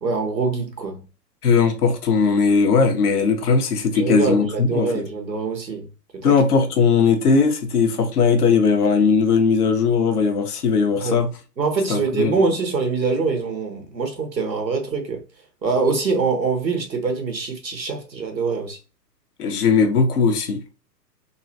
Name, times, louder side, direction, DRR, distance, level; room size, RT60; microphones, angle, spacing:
voice 1, 0.0-1.0 3.9-5.9 6.1-6.3 11.0-11.2 11.6-15.2 15.6-18.8, right 4 dB, 85° right, 1.3 m, -24 dB
voice 2, 1.4-5.0 6.2-11.3 11.9-12.3 19.4-20.7, left 5 dB, 65° left, 1.0 m, -18 dB
3.8 x 2.5 x 2.7 m
figure-of-eight pair, 110°, 49 cm